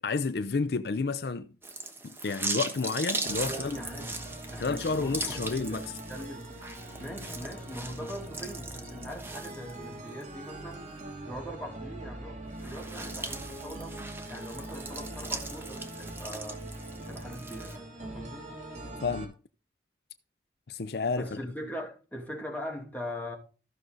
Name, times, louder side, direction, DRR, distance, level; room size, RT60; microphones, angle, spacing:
voice 1, 0.0-1.5 2.0-3.7 4.6-5.9 19.0-19.3 20.7-21.4, left 4 dB, 60° left, 0.5 m, -30 dB
sound 1, 1.6-10.2 10.7-10.8 12.5-17.8, right 3 dB, 15° right, 1.2 m, -39 dB
sound 2, 3.3-19.3, right 1 dB, 40° right, 2.9 m, -42 dB
voice 2, 3.4-4.2 4.5-6.5 7.0-10.9 11.3-16.7 17.0-18.5 21.2-23.4, equal, 10° left, 2.6 m, -41 dB
14.5 x 6.3 x 3.9 m
head